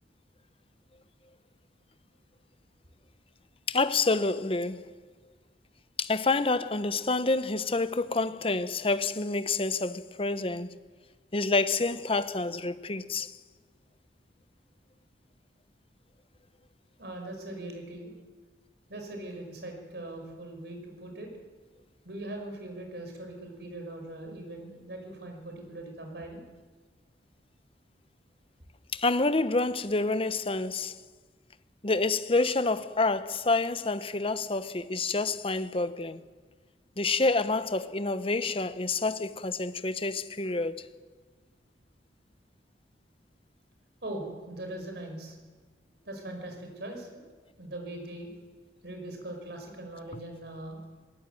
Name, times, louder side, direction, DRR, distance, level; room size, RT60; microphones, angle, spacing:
voice 1, 3.7-5.0 6.0-10.8 11.3-13.4 28.9-31.0 31.8-36.2 37.0-40.9, left 3 dB, 30° left, 0.9 m, -28 dB
voice 2, 17.0-18.2 18.9-21.3 22.0-26.4 44.0-45.4 46.1-47.2 47.6-48.3 48.8-50.8, right 1 dB, 65° right, 5.8 m, -41 dB
22.0 x 18.0 x 9.2 m
head